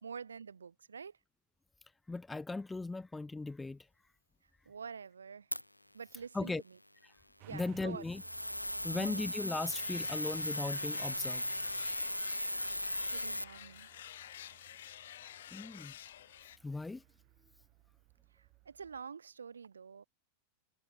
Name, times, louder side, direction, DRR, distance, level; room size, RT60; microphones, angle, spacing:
voice 1, 0.0-1.1 4.7-5.5 5.9-6.5 7.4-8.0 8.9-9.3 13.1-13.9 18.6-20.0, right 6 dB, 70° right, 1.3 m, -46 dB
voice 2, 2.1-3.9 6.3-6.6 7.0-7.1 7.5-8.2 8.8-11.4 15.5-15.9 16.6-17.0, left 3 dB, 10° left, 0.3 m, -38 dB
sound 1, 5.5-5.6 8.0-13.4, left 1 dB, 90° left, 0.4 m, -37 dB
Motor vehicle (road) / Engine starting, 7.4-19.0, right 29 dB, 45° right, 7.7 m, -60 dB
sound 2, 9.7-16.6, left 12 dB, 60° left, 0.8 m, -50 dB
figure-of-eight pair, 90°, 0 cm